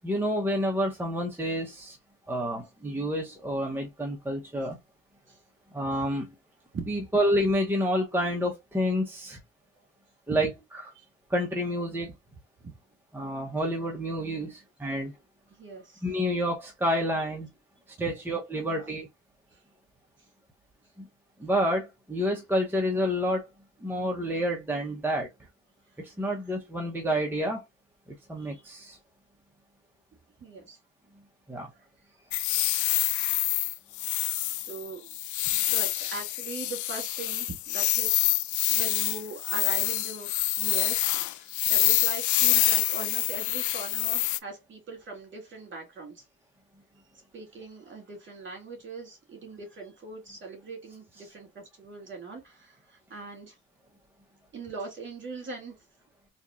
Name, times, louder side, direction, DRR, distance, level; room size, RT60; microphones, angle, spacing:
voice 1, 0.0-2.0 2.3-4.8 5.7-6.3 6.9-9.4 10.3-10.5 11.3-12.1 13.1-15.1 16.0-17.5 18.0-19.1 21.0-21.1 21.4-23.5 23.8-25.3 26.0-27.6 28.3-29.0 31.5-31.7, equal, 5° right, 0.9 m, -28 dB
voice 2, 15.5-16.0 18.5-18.9 19.5-19.6 28.4-28.6 30.4-30.8 32.2-32.9 34.5-35.2 35.5-38.2 38.7-40.3 40.6-46.2 47.3-53.6 54.5-55.7, right 3 dB, 40° right, 2.5 m, -41 dB
sound 1, 32.3-44.4, left 15 dB, 75° left, 0.5 m, -26 dB
4.0 x 3.0 x 2.5 m
cardioid pair, 90°, 30 cm